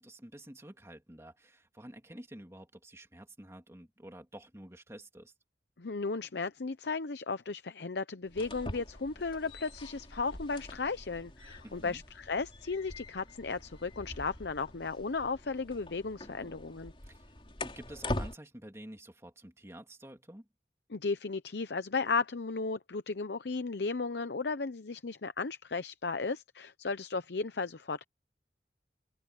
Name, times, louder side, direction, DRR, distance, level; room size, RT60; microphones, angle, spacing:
voice 1, 0.0-5.3 11.6-12.0 17.0-17.3 17.6-20.5, right 1 dB, 15° right, 2.8 m, -50 dB
voice 2, 5.8-16.9 20.9-28.0, left 4 dB, 75° left, 0.8 m, -35 dB
sound 1, 8.3-18.3, left 1 dB, 30° left, 4.4 m, -43 dB
head